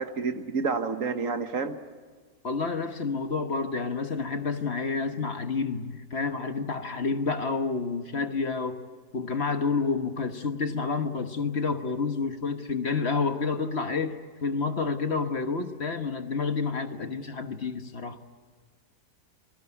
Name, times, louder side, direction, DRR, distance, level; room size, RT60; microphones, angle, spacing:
voice 1, 0.0-1.8, right 4 dB, 55° right, 1.4 m, -29 dB
voice 2, 2.4-8.8 9.1-18.2, left 4 dB, 40° left, 1.4 m, -29 dB
26.5 x 19.5 x 9.7 m
omnidirectional pair, 1.8 m